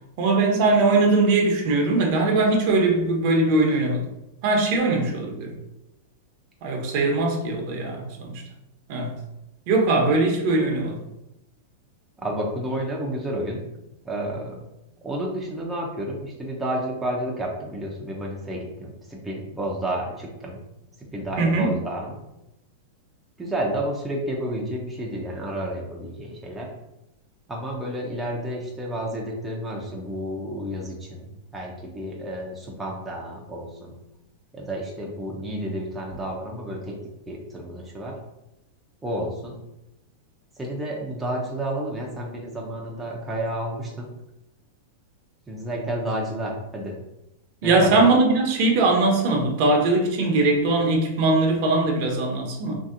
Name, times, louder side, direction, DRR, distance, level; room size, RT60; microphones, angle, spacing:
voice 1, 0.2-4.0 4.4-5.5 6.6-8.4 8.9-9.2 9.7-11.0 21.4-21.7 47.6-52.8, right 2 dB, 55° right, 1 dB, 0.8 m, -21 dB
voice 2, 12.2-13.6 14.0-14.6 15.0-20.6 21.1-22.2 23.4-26.7 27.5-34.0 34.5-37.0 37.3-38.2 39.0-39.6 40.6-44.1 45.5-47.0 47.6-47.9, right 1 dB, 10° right, -3 dB, 0.6 m, -31 dB
3.1 x 2.7 x 2.5 m, 0.89 s
hypercardioid pair, 125°, 0 cm